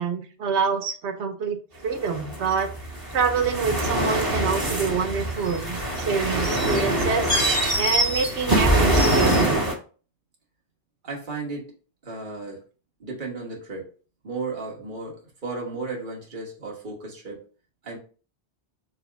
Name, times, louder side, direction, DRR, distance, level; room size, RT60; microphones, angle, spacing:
voice 1, 0.0-1.6 1.8-2.7 3.1-7.3 7.8-9.6, right 6 dB, 80° right, 6 dB, 1.0 m, -26 dB
sound 1, 1.9-9.7, right 1 dB, 20° right, 1.1 m, -24 dB
voice 2, 11.0-11.7 12.0-12.6 13.0-13.9 14.2-17.4 17.8-18.0, right 3 dB, 45° right, -2 dB, 1.4 m, -34 dB
5.3 x 2.1 x 3.4 m, 0.37 s
omnidirectional pair, 1.1 m